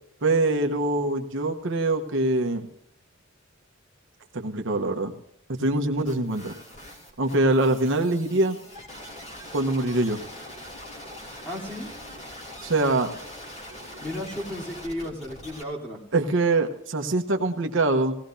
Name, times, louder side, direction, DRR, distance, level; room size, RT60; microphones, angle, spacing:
voice 1, 0.2-2.7 4.3-5.1 5.5-6.6 7.2-8.6 9.5-10.2 12.6-13.1 16.1-18.2, right 2 dB, 60° right, 4 dB, 1.0 m, -24 dB
sound 1, 6.0-15.6, left 1 dB, 30° left, 3.2 m, -42 dB
voice 2, 11.4-11.9 14.0-16.0, left 1 dB, 10° left, -4 dB, 3.4 m, -34 dB
19.0 x 17.0 x 2.7 m, 0.76 s
head